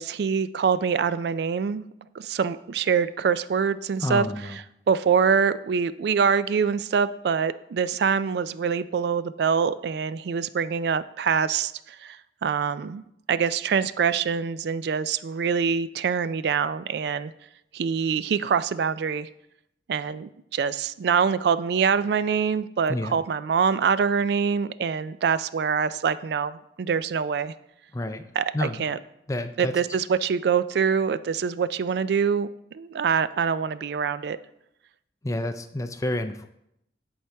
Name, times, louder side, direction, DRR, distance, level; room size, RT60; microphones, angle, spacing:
voice 1, 0.0-1.8 2.2-4.3 4.5-4.6 4.9-13.0 13.3-17.3 17.7-19.3 19.9-27.5 28.4-28.5 28.8-29.0 29.6-32.5 32.7-34.4, right 6 dB, 60° right, 15 dB, 0.3 m, -25 dB
voice 2, 4.0-4.6 22.9-23.2 27.9-28.2 28.5-28.8 29.3-29.7 35.2-36.5, left 1 dB, 15° left, 8 dB, 0.4 m, -29 dB
10.5 x 4.6 x 3.4 m, 0.78 s
head